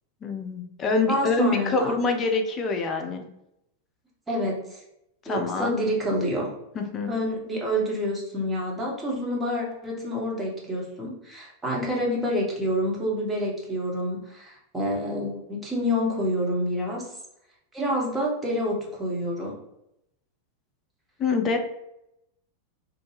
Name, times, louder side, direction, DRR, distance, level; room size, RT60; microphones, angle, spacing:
voice 1, 0.2-3.3 5.2-5.8 6.7-7.1 21.2-21.6, left 3 dB, 25° left, 4 dB, 0.5 m, -25 dB
voice 2, 1.1-1.9 4.3-4.8 5.3-6.5 7.1-17.1 17.7-19.5, equal, 15° right, -3 dB, 0.9 m, -28 dB
2.5 x 2.1 x 3.2 m, 0.82 s
figure-of-eight pair, 90°, 0 cm